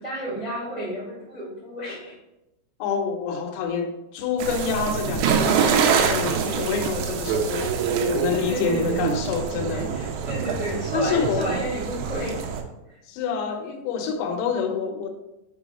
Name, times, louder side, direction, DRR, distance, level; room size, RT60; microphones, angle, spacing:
voice 1, 0.0-2.2 8.3-9.1 9.7-12.4 12.9-13.0, equal, 70° right, 0.5 m, -32 dB
voice 2, 2.8-10.2 10.9-11.5 13.1-15.1, left 6 dB, 85° left, 3.6 m, -27 dB
sound 1, 4.4-12.6, right 7 dB, 90° right, 3.5 m, -25 dB
7.9 x 3.7 x 4.1 m
omnidirectional pair, 5.9 m